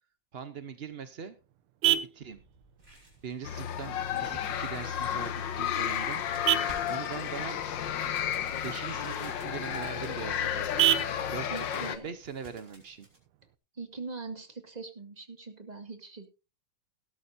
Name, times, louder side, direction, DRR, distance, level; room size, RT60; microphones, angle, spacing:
voice 1, 0.3-1.4 1.8-2.4 2.9-6.2 6.9-7.6 8.6-10.6 11.3-13.1, right 6 dB, 60° right, 10 dB, 0.6 m, -41 dB
Vehicle horn car horn honking, 0.6-13.6, right 13 dB, 85° right, 1.7 m, -35 dB
sound 1, 2.3-13.2, right 1 dB, 40° right, 6.4 m, -53 dB
sound 2, 3.4-12.0, left 9 dB, 65° left, 1.6 m, -32 dB
voice 2, 11.5-12.1 13.7-16.3, right 4 dB, 20° right, 6 dB, 1.9 m, -42 dB
17.5 x 12.5 x 2.7 m, 0.30 s
omnidirectional pair, 2.3 m